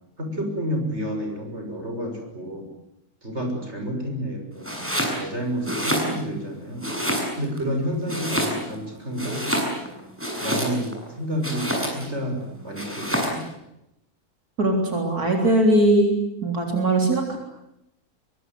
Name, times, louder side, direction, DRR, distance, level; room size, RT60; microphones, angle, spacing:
voice 1, 0.2-2.7 3.2-6.8 7.4-9.4 10.4-12.4 12.6-13.4, equal, 45° right, 4 dB, 6.9 m, -30 dB
Domestic sounds home sounds, 4.6-5.2 5.6-6.5 6.8-7.6 8.1-8.8 9.1-11.0 11.4-12.1 12.8-13.4, equal, 10° right, 7.2 m, -27 dB
voice 2, 14.6-16.2 16.4-17.4, right 1 dB, 85° right, 2 dB, 4.3 m, -20 dB
25.0 x 24.0 x 9.4 m, 0.86 s
omnidirectional pair, 1.6 m